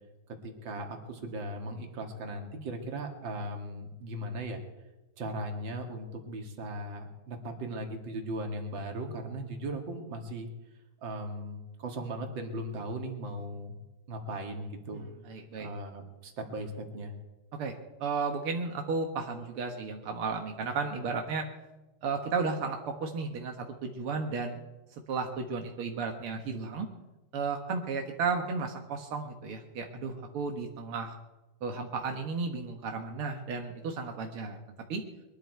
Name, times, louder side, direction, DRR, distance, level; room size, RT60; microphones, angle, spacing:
voice 1, 0.4-4.6 5.2-10.5 11.0-13.8 14.1-15.0 15.6-17.1, right 1 dB, 40° right, 3 dB, 1.9 m, -38 dB
voice 2, 15.0-15.7 17.5-21.5 22.0-24.6 25.1-26.9 27.3-31.1 31.6-34.6 34.9-35.0, right 4 dB, 75° right, 3 dB, 1.2 m, -34 dB
22.5 x 13.0 x 4.6 m, 1.1 s
omnidirectional pair, 4.5 m